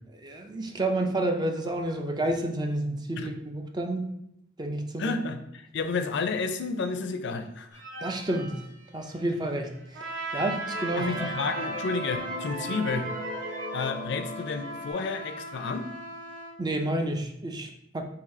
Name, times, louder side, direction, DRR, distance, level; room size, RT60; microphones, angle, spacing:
voice 1, 0.2-4.1 4.6-5.2 8.0-8.6 8.9-11.1 16.6-18.0, right 1 dB, 20° right, 4 dB, 0.5 m, -30 dB
voice 2, 5.0-5.4 5.7-7.8 11.0-13.1 13.7-15.9, left 4 dB, 65° left, 7 dB, 0.4 m, -31 dB
sound 1, 7.7-9.4 9.9-10.0 10.4-14.9, equal, 45° right, 1.1 m, -37 dB
Trumpet, 9.9-16.6, right 2 dB, 90° right, 0.8 m, -38 dB
4.0 x 2.7 x 4.1 m, 0.77 s
head